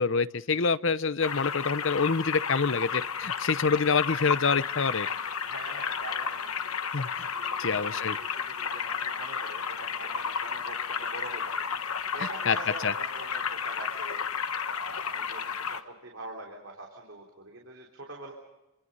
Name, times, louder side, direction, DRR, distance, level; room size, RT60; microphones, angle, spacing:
voice 1, 0.0-5.1 6.9-7.3 7.6-8.2 12.5-12.6 12.8-12.9, left 5 dB, 60° left, 15 dB, 0.8 m, -26 dB
sound 1, 1.2-15.8, left 6 dB, 80° left, 1.4 m, -32 dB
voice 2, 5.4-6.6 7.0-18.3, right 2 dB, 60° right, 0 dB, 3.6 m, -44 dB
29.0 x 25.5 x 5.5 m, 0.98 s
head